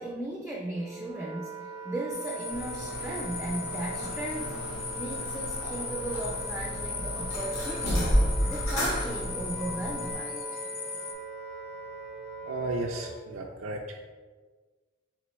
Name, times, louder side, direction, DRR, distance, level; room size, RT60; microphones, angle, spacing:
voice 1, 0.0-1.6 1.8-4.6 4.9-8.1 8.5-10.6, right 1 dB, 5° right, -2 dB, 0.3 m, -36 dB
Wind instrument woodwind instrument, 0.6-13.3, right 3 dB, 55° left, 1.0 m, -42 dB
sound 1, 2.1-11.1, left 5 dB, 40° left, 0.6 m, -38 dB
sound 2, 2.5-10.2, equal, 75° left, 1.2 m, -32 dB
voice 2, 12.4-14.0, right 2 dB, 80° right, 1 dB, 0.4 m, -34 dB
4.2 x 3.4 x 3.0 m, 1.4 s
head